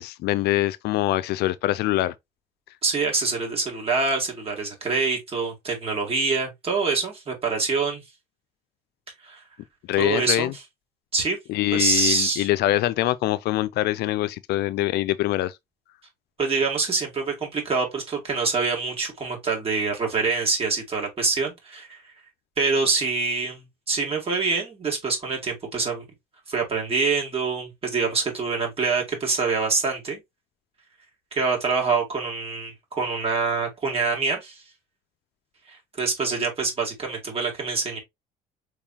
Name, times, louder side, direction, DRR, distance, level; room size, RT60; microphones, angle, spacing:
voice 1, 0.0-2.1 9.9-10.5 11.5-15.5, left 15 dB, 75° left, 0.4 m, -24 dB
voice 2, 2.8-8.0 9.2-9.4 10.0-10.6 11.1-11.4 11.7-12.5 16.4-22.0 22.6-26.0 26.5-30.2 31.3-34.6 35.7-38.0, right 4 dB, 35° right, 2.5 m, -25 dB
4.7 x 3.6 x 2.9 m
cardioid pair, 110°, 17 cm